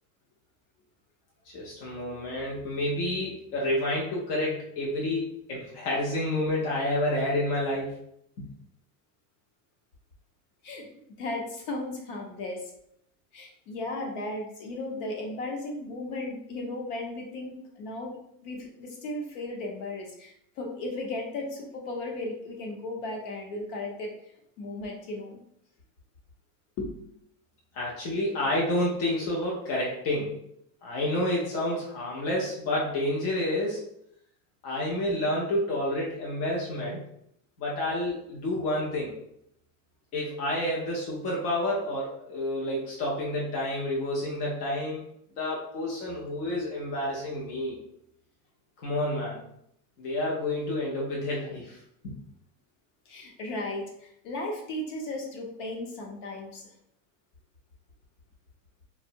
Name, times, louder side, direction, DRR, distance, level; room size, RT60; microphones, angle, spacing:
voice 1, 1.5-7.9 8.4-8.5 27.7-30.4 30.8-33.8 34.6-37.0 37.6-39.2 40.1-45.0 45.4-47.8 48.8-49.5 50.0-51.8 52.0-52.1, left 1 dB, 30° left, -4 dB, 0.4 m, -29 dB
voice 2, 11.2-12.6 13.3-18.1 18.4-24.1 24.6-25.4 26.8-27.1 53.1-56.7, left 2 dB, 55° left, 1 dB, 0.8 m, -35 dB
2.7 x 2.0 x 2.6 m, 0.73 s
supercardioid pair, 160°, 47 cm